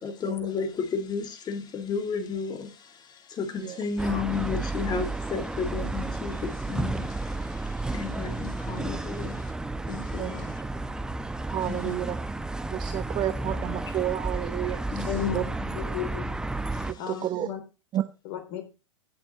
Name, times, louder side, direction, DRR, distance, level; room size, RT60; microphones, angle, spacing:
voice 1, 0.0-9.5 9.9-10.6 11.6-11.9 13.9-14.0 14.9-15.3 16.7-17.1, left 5 dB, 25° left, 2.2 m, -33 dB
sound 1, 4.0-16.9, right 2 dB, 5° right, 0.8 m, -32 dB
voice 2, 11.5-12.2 12.7-15.4 17.1-17.5 17.9-18.0, right 13 dB, 30° right, 1.0 m, -30 dB
voice 3, 15.0-16.3 17.0-17.6 18.2-18.6, left 10 dB, 50° left, 3.3 m, -34 dB
16.5 x 7.0 x 3.0 m
hypercardioid pair, 100°, 16 cm